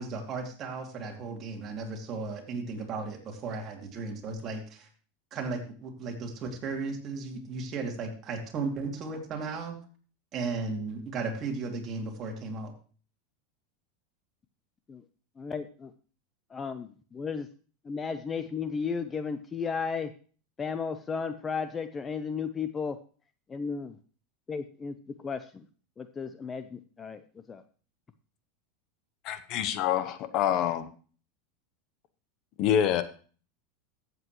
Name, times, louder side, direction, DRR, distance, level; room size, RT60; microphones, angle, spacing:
voice 1, 0.0-4.9 5.3-9.8 10.3-12.7, right 4 dB, 35° right, 1 dB, 2.6 m, -35 dB
voice 2, 15.4-15.9 16.5-17.5 17.8-20.1 20.6-23.0 23.5-24.0 24.5-25.6 26.0-27.2 27.5-27.6, left 5 dB, 20° left, 10 dB, 0.6 m, -34 dB
voice 3, 29.2-30.9 32.6-33.0, left 10 dB, 45° left, 12 dB, 0.9 m, -26 dB
14.0 x 7.8 x 3.1 m, 0.41 s
supercardioid pair, 130°, 0 cm